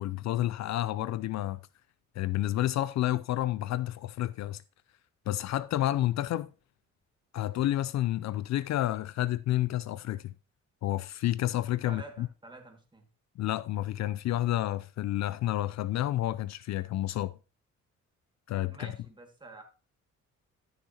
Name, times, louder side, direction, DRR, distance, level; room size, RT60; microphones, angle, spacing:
voice 1, 0.0-1.6 2.2-4.6 5.3-6.5 7.3-10.3 10.8-12.3 13.4-17.3 18.5-18.9, left 14 dB, 65° left, 0.4 m, -30 dB
voice 2, 11.9-13.1 18.7-19.6, right 2 dB, 15° right, 2.0 m, -48 dB
12.5 x 6.5 x 2.9 m
cardioid pair, 90°, 30 cm